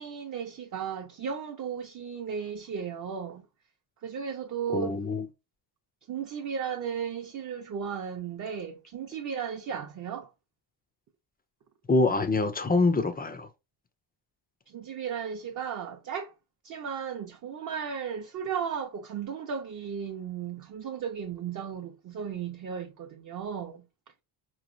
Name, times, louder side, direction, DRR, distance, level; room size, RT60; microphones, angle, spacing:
voice 1, 0.0-3.4 4.0-4.9 6.1-10.3 14.7-16.3 16.6-23.8, right 7 dB, 40° right, 0.5 m, -35 dB
voice 2, 4.7-5.3 11.9-13.5, left 3 dB, 20° left, 0.3 m, -25 dB
5.2 x 3.0 x 2.5 m
wide cardioid pair, 170°, 49 cm